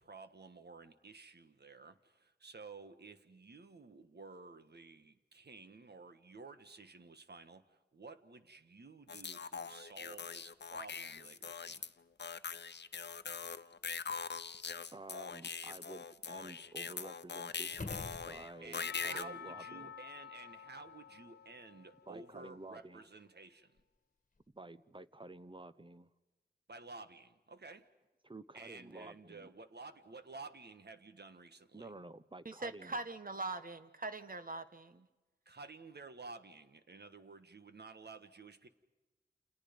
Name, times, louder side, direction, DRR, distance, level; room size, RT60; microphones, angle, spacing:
voice 1, 0.0-11.9 18.6-23.7 26.7-27.8 28.5-31.9 35.4-38.7, right 3 dB, 70° right, 9 dB, 1.5 m, -53 dB
sound 1, 9.1-11.9 12.2-19.2, left 5 dB, 90° left, 0.7 m, -42 dB
voice 2, 14.9-19.9 22.1-23.1 24.5-26.1 28.2-29.5 31.7-32.9, right 2 dB, 30° right, 13 dB, 0.9 m, -51 dB
sound 2, 17.7-18.9 23.8-23.9, left 3 dB, 50° left, 1.8 m, -45 dB
Percussion / Church bell, 18.8-22.7, left 7 dB, 70° left, 1.0 m, -51 dB
voice 3, 32.4-35.1, right 2 dB, 55° right, 10 dB, 1.4 m, -42 dB
29.0 x 29.0 x 5.3 m, 1.1 s
wide cardioid pair, 70°, 17 cm